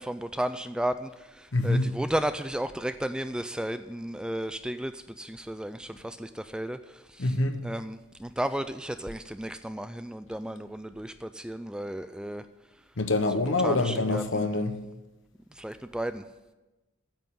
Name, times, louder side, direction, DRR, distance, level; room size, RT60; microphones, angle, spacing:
voice 1, 0.0-7.4 7.6-12.5 13.5-14.6 15.5-16.2, right 1 dB, 5° right, 0.3 m, -34 dB
voice 2, 1.5-1.9 7.2-7.6 13.0-14.8, left 2 dB, 65° left, 1.0 m, -25 dB
9.0 x 7.8 x 8.3 m
head